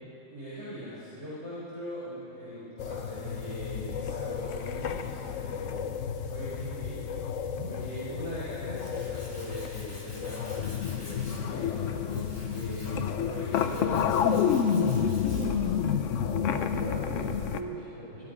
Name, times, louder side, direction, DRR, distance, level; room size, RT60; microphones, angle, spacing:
voice 1, 0.3-5.9 6.2-16.0 16.4-16.5, equal, 25° right, -11 dB, 4.4 m, -41 dB
sound 1, 2.8-17.6, left 7 dB, 75° left, 1.1 m, -30 dB
Tools, 8.2-15.7, left 1 dB, 35° left, 3.4 m, -50 dB
voice 2, 16.4-18.3, right 1 dB, 50° right, -8 dB, 4.8 m, -38 dB
21.5 x 12.5 x 5.2 m, 2.9 s
omnidirectional pair, 1.3 m